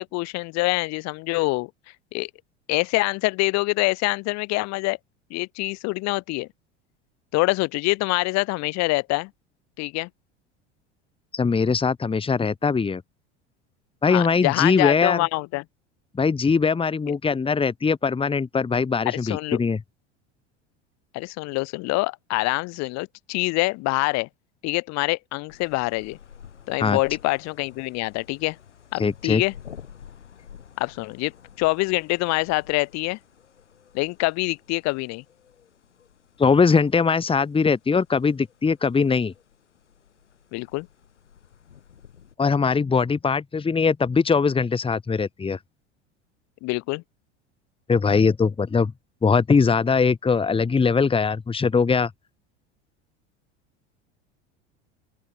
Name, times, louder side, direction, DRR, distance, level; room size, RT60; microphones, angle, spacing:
voice 1, 0.0-1.7 2.1-2.3 2.7-5.0 5.3-6.5 7.3-9.3 9.8-10.1 14.1-15.6 19.1-19.6 21.1-24.3 24.6-26.2 26.7-28.6 28.9-29.5 30.8-31.3 31.6-33.2 33.9-35.2 40.5-40.9 46.6-47.0, left 24 dB, 50° left, 1.1 m, -25 dB
voice 2, 11.3-13.0 14.0-15.2 16.1-19.8 26.8-27.0 29.0-29.4 36.4-39.3 42.4-45.6 47.9-48.9 49.2-52.1, left 5 dB, 15° left, 1.5 m, -21 dB
sound 1, 25.5-42.4, left 8 dB, 85° left, 5.7 m, -50 dB
open air
hypercardioid pair, 80°, 35 cm